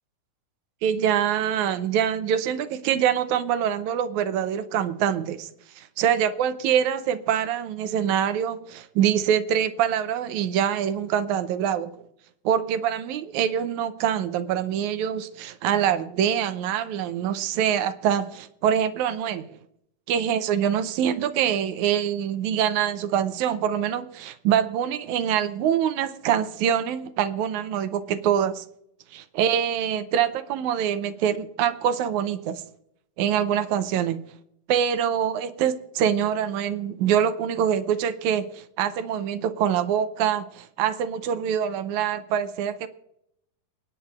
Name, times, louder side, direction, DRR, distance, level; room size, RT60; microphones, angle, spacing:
voice 1, 0.8-5.5 5.8-11.9 12.5-19.6 20.1-28.6 29.1-32.6 33.2-34.2 34.7-42.9, right 9 dB, 75° right, 11 dB, 1.9 m, -25 dB
28.5 x 9.6 x 2.4 m, 0.75 s
omnidirectional pair, 3.8 m